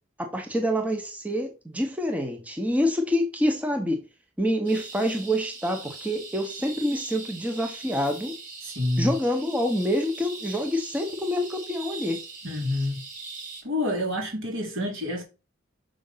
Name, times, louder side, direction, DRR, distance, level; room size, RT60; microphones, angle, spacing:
voice 1, 0.2-4.0 4.4-8.3 9.0-12.2, equal, 5° right, 0.9 m, -26 dB
sound 1, 4.6-13.6, right 4 dB, 40° right, 3.2 m, -41 dB
voice 2, 8.6-9.1 12.4-13.0 13.6-15.2, left 1 dB, 75° right, 4.0 m, -28 dB
6.5 x 5.2 x 5.6 m
head